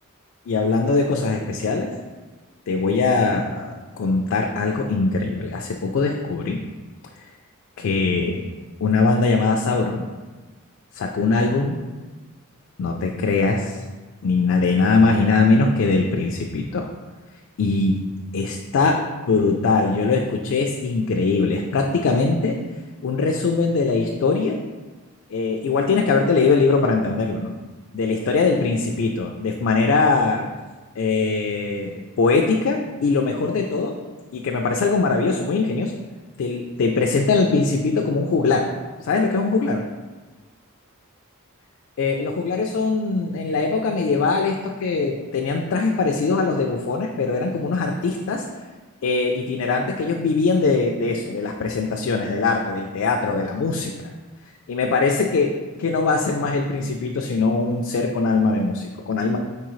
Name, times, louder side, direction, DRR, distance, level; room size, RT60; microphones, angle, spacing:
voice 1, 0.5-1.9 2.7-6.6 7.8-8.4 8.8-10.1 10.9-11.8 12.8-13.8 14.2-16.9 17.6-18.0 18.3-19.0 19.3-22.6 23.0-24.6 25.3-27.5 27.9-30.4 31.0-33.9 34.3-35.9 36.4-38.7 39.0-39.8 42.0-48.4 49.0-53.9 54.7-55.5 55.8-59.4, left 4 dB, 65° left, 2 dB, 0.4 m, -21 dB
4.6 x 3.7 x 3.1 m, 1.3 s
head